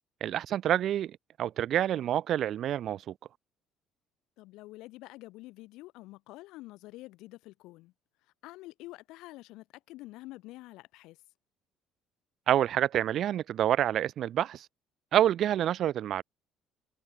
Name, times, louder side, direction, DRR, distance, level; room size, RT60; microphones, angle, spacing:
voice 1, 0.2-3.1 12.5-14.7 15.1-16.2, right 11 dB, 50° right, 0.6 m, -27 dB
voice 2, 4.4-7.9 8.4-11.2, left 19 dB, 80° left, 3.3 m, -47 dB
cardioid pair, 150°, 0 cm